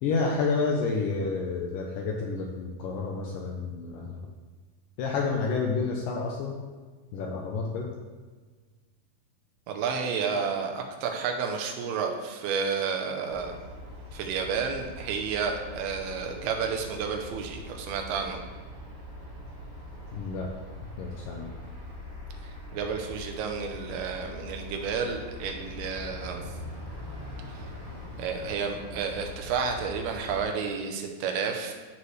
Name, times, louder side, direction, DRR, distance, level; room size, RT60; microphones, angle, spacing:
voice 1, 0.0-4.2 5.0-6.6 7.1-7.9 20.1-20.5 21.0-21.5, left 4 dB, 80° left, 0 dB, 2.0 m, -29 dB
voice 2, 9.7-13.6 14.1-18.4 22.7-26.4 27.5-27.7 28.2-31.7, right 6 dB, 80° right, 3 dB, 2.7 m, -31 dB
sound 1, 13.3-30.4, left 1 dB, 10° right, 1.3 m, -42 dB
13.5 x 4.7 x 3.2 m, 1.4 s
omnidirectional pair, 4.6 m